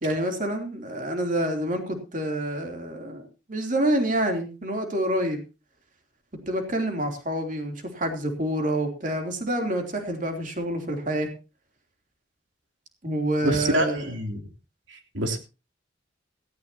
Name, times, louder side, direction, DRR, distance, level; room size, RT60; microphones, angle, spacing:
voice 1, 0.0-5.4 6.5-11.3 13.0-14.1, right 1 dB, 45° right, 4 dB, 3.2 m, -27 dB
voice 2, 13.4-14.4 14.9-15.4, right 1 dB, 90° right, 5 dB, 3.1 m, -26 dB
17.0 x 15.0 x 2.9 m, 0.30 s
head